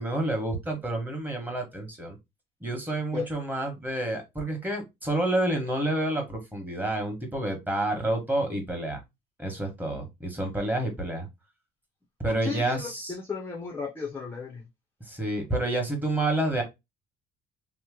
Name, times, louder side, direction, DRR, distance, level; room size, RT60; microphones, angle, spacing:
voice 1, 0.0-2.2 2.6-9.0 9.4-11.3 12.2-13.1 15.1-16.6, right 1 dB, 10° right, 1.2 m, -29 dB
voice 2, 12.4-14.7, left 5 dB, 15° left, 0.7 m, -34 dB
2.9 x 2.1 x 3.4 m
cardioid pair, 110°, 17 cm